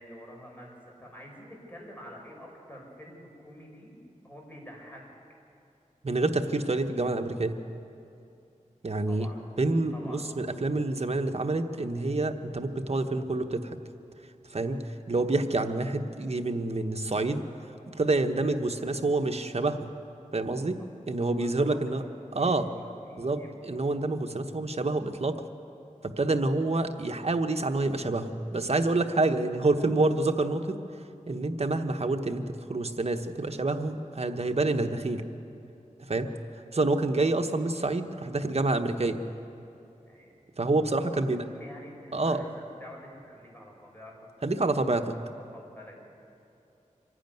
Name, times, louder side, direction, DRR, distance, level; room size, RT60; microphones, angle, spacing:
voice 1, 0.0-4.0 4.2-5.1 9.0-9.5 9.9-10.3 14.7-14.8 21.3-23.6 36.2-36.4 40.1-40.3 41.1-45.0 45.5-46.0, equal, 15° left, -1 dB, 5.6 m, -48 dB
voice 2, 6.0-7.6 8.8-9.3 9.6-13.8 14.5-14.8 15.1-17.4 17.9-19.9 20.3-20.7 21.1-22.0 22.3-22.7 23.2-25.3 26.0-30.8 31.3-32.4 32.7-35.2 36.1-36.3 36.7-39.2 40.6-41.4 42.1-42.4 44.4-45.0, right 2 dB, 50° right, 6 dB, 1.2 m, -27 dB
25.5 x 11.5 x 9.3 m, 2.7 s
wide cardioid pair, 70°, 14 cm